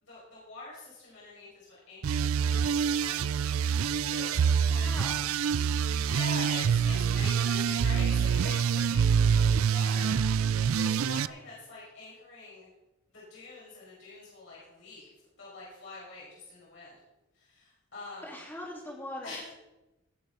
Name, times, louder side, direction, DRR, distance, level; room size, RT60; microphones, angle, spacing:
voice 1, 0.0-3.6 4.0-5.0 6.1-10.4 10.7-12.7 13.1-15.1 15.4-17.0 17.3-18.4 19.2-19.5, left 3 dB, 60° left, -7 dB, 5.2 m, -45 dB
sound 1, 2.0-11.3, right 7 dB, 80° right, 0.4 m, -26 dB
voice 2, 18.2-19.5, left 1 dB, 10° left, -4 dB, 3.4 m, -41 dB
19.0 x 7.2 x 5.6 m, 1.0 s
head